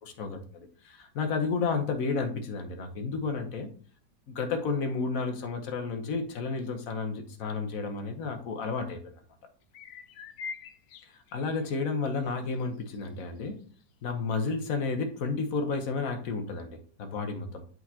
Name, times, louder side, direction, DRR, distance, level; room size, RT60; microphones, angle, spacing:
voice 1, 0.0-3.7 4.3-9.1 11.1-13.6 14.0-17.6, left 4 dB, 55° left, 6 dB, 1.3 m, -32 dB
sound 1, 9.6-11.7 12.2-12.6 12.9-13.0 13.8-13.9, left 6 dB, 75° left, 0.7 m, -44 dB
8.3 x 4.5 x 2.8 m, 0.44 s
omnidirectional pair, 1.9 m